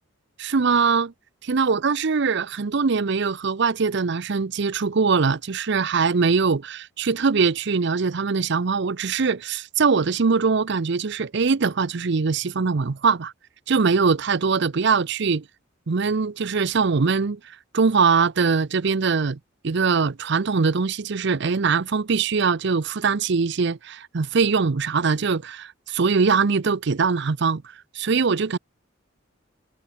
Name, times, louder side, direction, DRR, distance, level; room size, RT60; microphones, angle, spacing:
voice 1, 0.4-1.1 1.5-13.3 13.7-15.4 15.9-17.4 17.7-19.4 19.6-27.6 27.9-28.6, right 5 dB, 60° right, 0.6 m, -22 dB
head